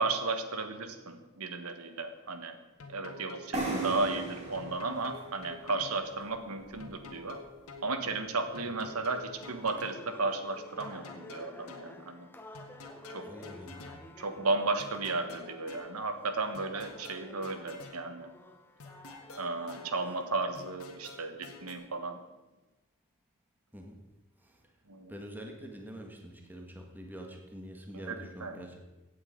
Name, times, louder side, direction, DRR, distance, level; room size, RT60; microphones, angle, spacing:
voice 1, 0.0-2.6 2.9-7.4 7.8-12.3 13.1-13.3 14.2-18.3 19.3-22.2 24.9-25.1 28.0-28.5, right 3 dB, 85° right, 8 dB, 1.4 m, -34 dB
sound 1, 2.8-3.9 4.5-6.0 6.8-7.9 8.5-10.0 10.8-11.9 12.5-14.0 14.8-15.9 16.5-18.0 18.8-19.9 20.5-21.7, left 3 dB, 80° left, 1.8 m, -48 dB
sound 2, 3.5-7.2, right 2 dB, 30° right, 2.9 m, -38 dB
sound 3, 9.3-20.5, left 1 dB, 10° left, 1.0 m, -52 dB
voice 2, 13.3-14.0 23.7-24.0 24.4-24.6 25.1-28.8, equal, 10° right, 1 dB, 1.7 m, -46 dB
16.0 x 8.7 x 5.2 m, 1.1 s
head